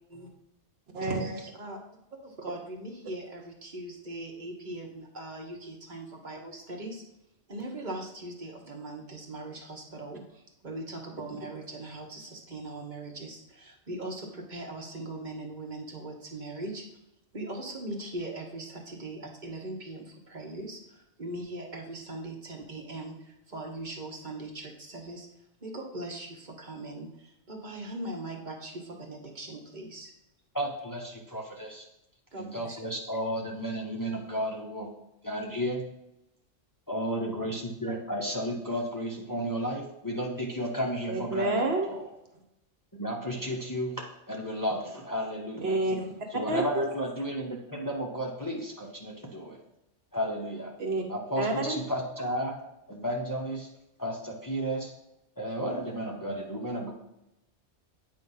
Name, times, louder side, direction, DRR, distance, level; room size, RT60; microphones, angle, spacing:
voice 1, 0.9-1.5 41.1-42.1 45.6-46.1 46.5-46.9 50.8-51.0 51.4-51.8, right 2 dB, 60° right, 2 dB, 1.2 m, -29 dB
voice 2, 2.2-7.0 7.5-16.9 17.3-25.3 25.6-30.1 32.3-32.8, right 2 dB, 40° right, 0 dB, 1.3 m, -40 dB
voice 3, 30.5-31.8 32.4-34.9 35.2-35.8 36.9-41.6 41.9-42.1 43.0-45.7 46.3-49.6 50.1-50.7 51.1-52.5 52.9-53.7 54.0-54.9 55.4-56.9, equal, 20° left, -1 dB, 0.9 m, -33 dB
8.8 x 3.2 x 5.4 m, 0.87 s
omnidirectional pair, 1.2 m